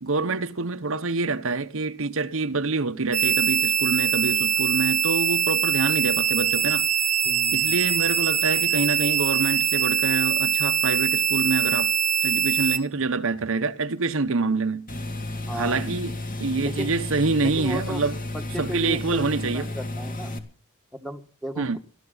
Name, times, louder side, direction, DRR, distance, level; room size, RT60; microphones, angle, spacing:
voice 1, 0.0-6.9 7.5-11.9 12.2-14.9 15.5-18.2 18.6-19.7 21.6-21.8, right 3 dB, 65° right, 0.9 m, -26 dB
sound 1, 3.1-12.8, right 8 dB, 30° right, 1.2 m, -23 dB
voice 2, 7.2-7.8 15.5-15.9 16.6-16.9 17.4-18.0 18.3-19.3 19.5-20.4 20.9-21.8, equal, ahead, 1.7 m, -35 dB
sound 2, 14.9-20.4, left 2 dB, 40° left, 2.3 m, -32 dB
19.5 x 13.0 x 4.0 m
head